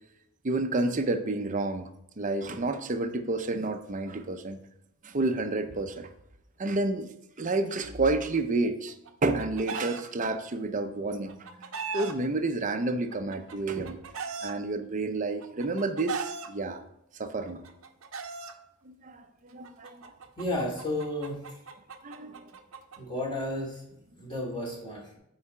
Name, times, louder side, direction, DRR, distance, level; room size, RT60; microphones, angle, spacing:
voice 1, 0.4-1.9 2.2-4.6 5.0-6.1 6.6-7.1 7.4-8.9 9.2-11.5 11.9-14.0 14.4-16.8 17.2-17.6 18.9-19.2 19.5-20.0 22.0-22.4, right 2 dB, 35° right, 8 dB, 0.7 m, -30 dB
Chicken rooster, 8.9-10.0 11.1-12.1 13.1-14.5 15.4-16.5 17.5-18.5 19.6-23.0, right 5 dB, 70° right, 0.8 m, -37 dB
voice 2, 20.4-21.4 23.0-23.8 24.2-25.2, left 1 dB, 25° left, -3 dB, 2.6 m, -32 dB
8.5 x 4.8 x 4.4 m, 0.79 s
head